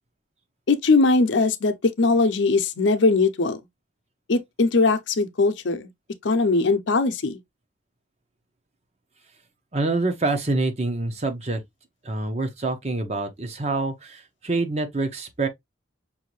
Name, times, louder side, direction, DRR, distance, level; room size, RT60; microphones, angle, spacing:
voice 1, 0.7-3.6 4.3-5.9 6.2-7.4, left 3 dB, 80° left, 0.6 m, -20 dB
voice 2, 9.7-11.6 12.0-15.5, right 2 dB, 35° right, 0.9 m, -26 dB
5.5 x 2.6 x 3.0 m
head